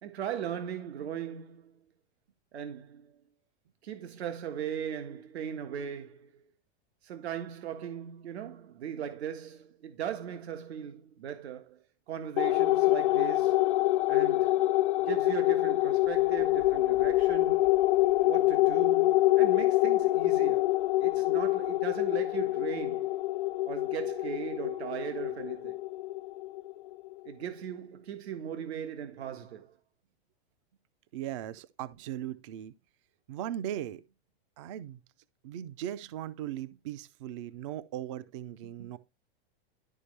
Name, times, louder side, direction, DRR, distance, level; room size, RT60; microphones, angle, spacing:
voice 1, 0.0-1.9 2.5-3.2 3.8-6.4 7.0-13.7 14.1-14.7 15.0-17.7 18.2-20.7 21.0-23.1 23.6-25.8 27.2-29.8, right 9 dB, 85° right, 1.5 m, -38 dB
sound 1, 12.4-27.1, left 17 dB, 55° left, 0.4 m, -26 dB
voice 2, 31.1-32.7 33.3-34.0 34.6-35.0 35.4-39.0, right 11 dB, 30° right, 0.4 m, -38 dB
12.0 x 5.1 x 3.2 m
supercardioid pair, 170°, 32 cm